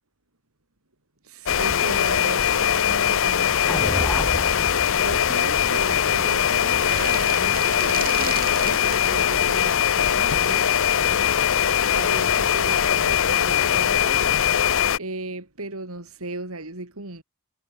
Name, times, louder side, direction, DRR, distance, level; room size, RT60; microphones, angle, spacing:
voice 1, 1.2-4.0 4.9-11.6 11.9-14.5 15.0-17.2, right 2 dB, 65° right, 3.5 m, -37 dB
sound 1, 1.5-15.0, left 9 dB, 60° left, 0.8 m, -21 dB
sound 2, 3.6-7.9, equal, ahead, 1.0 m, -33 dB
sound 3, 6.7-9.0, right 7 dB, 40° right, 3.7 m, -34 dB
head